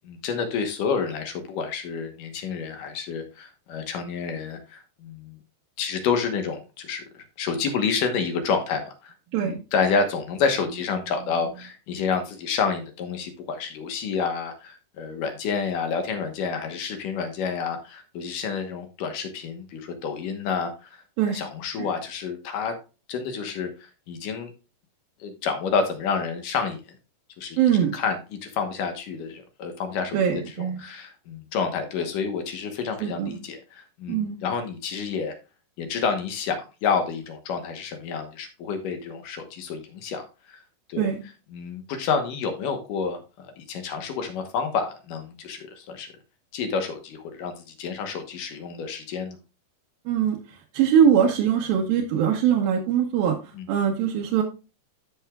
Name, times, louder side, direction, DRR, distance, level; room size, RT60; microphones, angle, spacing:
voice 1, 0.0-5.4 5.8-9.1 9.4-20.9 21.3-22.8 23.1-24.5 25.2-26.9 27.4-27.6 27.9-35.4 35.8-40.6 40.9-41.1 41.5-46.1 46.5-49.4 53.6-53.7, left 5 dB, 65° left, 6 dB, 2.3 m, -29 dB
voice 2, 9.3-9.6 21.2-21.4 21.8-21.9 27.6-27.9 30.1-30.8 33.0-33.4 34.1-34.4 41.0-41.2 50.1-54.4, right 8 dB, 70° right, -1 dB, 2.5 m, -22 dB
13.5 x 6.3 x 2.3 m, 0.31 s
omnidirectional pair, 4.8 m